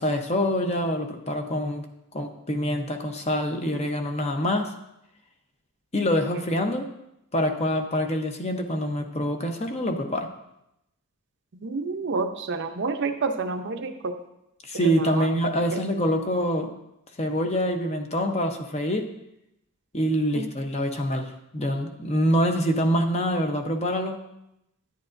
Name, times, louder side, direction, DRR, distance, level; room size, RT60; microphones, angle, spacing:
voice 1, 0.0-1.8 2.1-4.7 5.9-6.9 7.3-10.3 14.6-16.7 17.2-19.1 19.9-24.2, equal, 30° left, 4 dB, 0.8 m, -25 dB
voice 2, 11.6-14.1 14.8-15.3 15.7-15.8 20.3-20.5, right 4 dB, 55° right, 6 dB, 0.7 m, -29 dB
11.0 x 9.6 x 2.6 m, 0.83 s
head